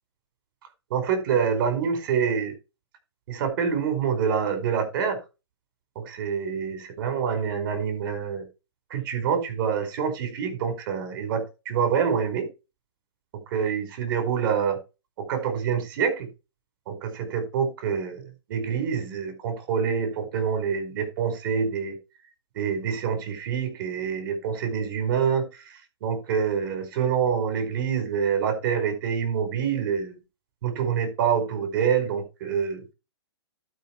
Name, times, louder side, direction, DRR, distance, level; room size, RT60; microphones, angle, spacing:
voice 1, 0.9-2.5 3.3-5.2 5.9-8.4 8.9-12.5 13.5-14.8 15.2-16.3 16.9-22.0 22.5-25.5 26.0-30.1 30.6-32.8, right 7 dB, 50° right, 4.9 m, -26 dB
12.0 x 5.7 x 4.6 m
hypercardioid pair, 150°, 14 cm